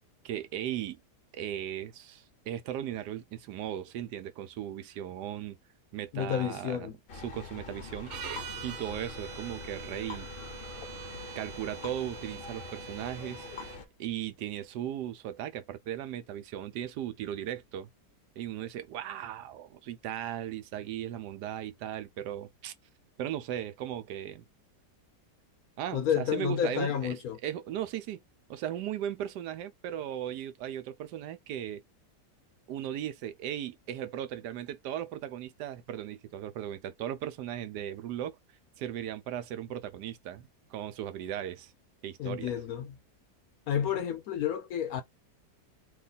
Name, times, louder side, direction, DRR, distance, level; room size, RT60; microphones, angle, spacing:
voice 1, 0.2-1.0 1.3-5.6 5.9-8.1 8.6-10.3 11.3-13.5 14.0-17.9 18.4-22.7 23.2-24.4 25.8-28.2 28.5-31.8 32.7-38.4 38.8-41.7 42.0-42.5, right 11 dB, 80° right, 1.2 m, -37 dB
voice 2, 6.1-6.9 25.9-27.4 42.2-43.0 43.7-45.0, left 9 dB, 70° left, 0.9 m, -30 dB
sound 1, 7.1-13.9, left 5 dB, 50° left, 0.7 m, -44 dB
sound 2, 8.1-13.8, right 8 dB, 60° right, 0.9 m, -44 dB
3.0 x 2.3 x 3.9 m
omnidirectional pair, 1.8 m